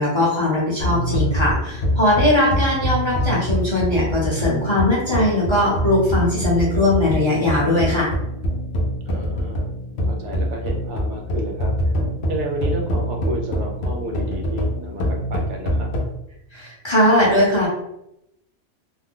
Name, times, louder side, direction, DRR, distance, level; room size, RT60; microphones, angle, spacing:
voice 1, 0.0-8.1 16.5-17.7, left 1 dB, 25° left, -6 dB, 0.8 m, -19 dB
sound 1, 0.8-16.1, equal, 65° left, 0.8 m, -25 dB
voice 2, 9.0-9.7 10.0-11.9 12.3-15.9, right 1 dB, 70° right, 2 dB, 0.9 m, -31 dB
2.6 x 2.2 x 3.5 m, 0.80 s
omnidirectional pair, 1.2 m